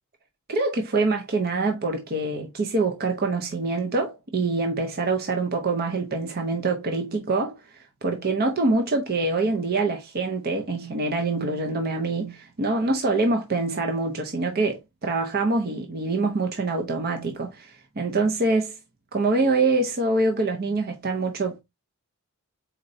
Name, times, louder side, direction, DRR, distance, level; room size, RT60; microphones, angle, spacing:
voice 1, 0.5-18.8 19.1-21.6, right 3 dB, 45° right, 0.6 m, -25 dB
4.3 x 3.9 x 2.6 m
head